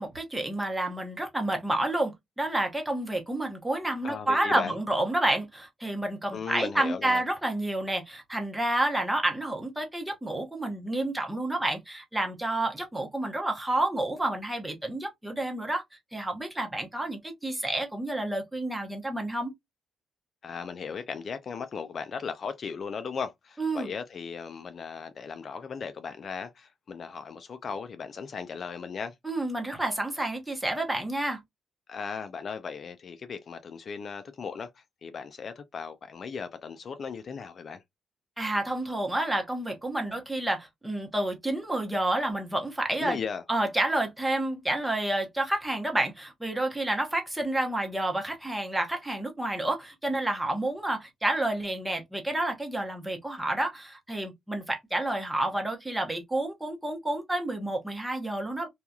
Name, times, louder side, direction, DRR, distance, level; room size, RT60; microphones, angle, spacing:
voice 1, 0.0-15.8 16.1-19.5 23.6-23.9 29.2-31.4 38.4-43.2 43.5-58.7, right 1 dB, 10° right, 0.9 m, -29 dB
voice 2, 4.0-4.7 6.3-7.2 20.4-29.1 31.9-37.8 43.0-43.4, left 6 dB, 50° left, 0.4 m, -37 dB
2.8 x 2.3 x 2.3 m
cardioid pair, 90°, 0 cm